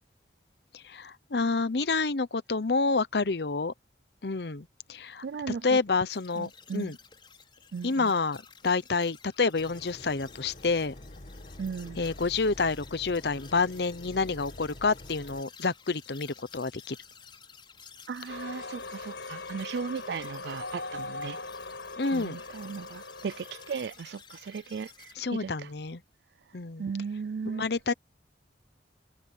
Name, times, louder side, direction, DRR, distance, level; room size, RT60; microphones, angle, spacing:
voice 1, 0.7-3.7 4.2-5.2 5.6-7.0 7.8-10.9 12.0-17.0 22.0-22.4 25.2-26.0 26.5-26.9 27.5-27.9, left 4 dB, 65° left, 0.8 m, -28 dB
voice 2, 5.2-5.8 6.4-6.9 7.7-8.1 11.6-12.0 18.1-21.4 22.1-25.7 26.8-27.6, right 5 dB, 65° right, 0.4 m, -36 dB
sound 1, 6.1-25.1, left 6 dB, 30° left, 4.9 m, -54 dB
sound 2, 9.6-15.4, left 1 dB, 45° left, 1.4 m, -47 dB
sound 3, 18.3-23.8, left 3 dB, 85° left, 4.9 m, -40 dB
head